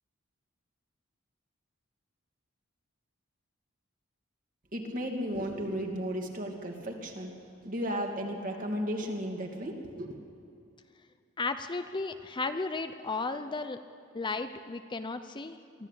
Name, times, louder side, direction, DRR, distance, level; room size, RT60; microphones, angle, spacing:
voice 1, 4.7-7.4 7.6-10.2, equal, 40° right, 1 dB, 2.6 m, -34 dB
voice 2, 11.4-13.8 14.1-15.9, left 3 dB, 25° left, 9 dB, 0.6 m, -34 dB
23.0 x 14.0 x 8.4 m, 2.5 s
head